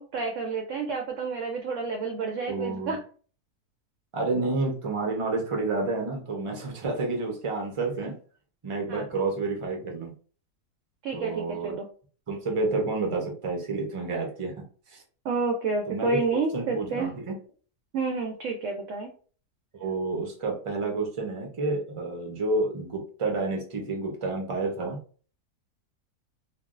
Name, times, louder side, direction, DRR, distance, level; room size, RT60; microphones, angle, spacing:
voice 1, 0.0-3.0 8.9-9.0 11.0-11.9 15.2-17.1 17.9-19.1, right 4 dB, 70° right, 3 dB, 0.8 m, -29 dB
voice 2, 2.5-2.9 4.1-8.2 8.6-10.1 11.1-11.7 12.3-15.0 15.9-16.2 16.5-17.3 19.8-25.0, right 3 dB, 45° right, 0 dB, 0.4 m, -29 dB
3.3 x 2.2 x 2.4 m, 0.41 s
omnidirectional pair, 1.6 m